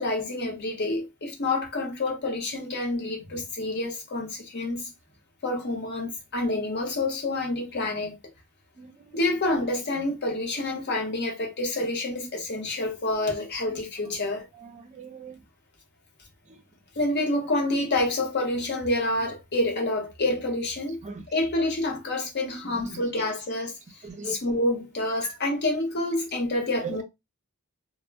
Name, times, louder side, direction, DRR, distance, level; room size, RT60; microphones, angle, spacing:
voice 1, 0.0-4.9 5.4-8.2 9.1-14.5 17.0-21.0 21.3-23.8 24.2-27.0, left 2 dB, 50° left, 0.8 m, -28 dB
voice 2, 14.6-15.4 21.0-21.2 22.9-23.0 24.0-24.3 25.2-25.3, right 1 dB, 30° right, 0.5 m, -40 dB
2.1 x 2.1 x 3.3 m
head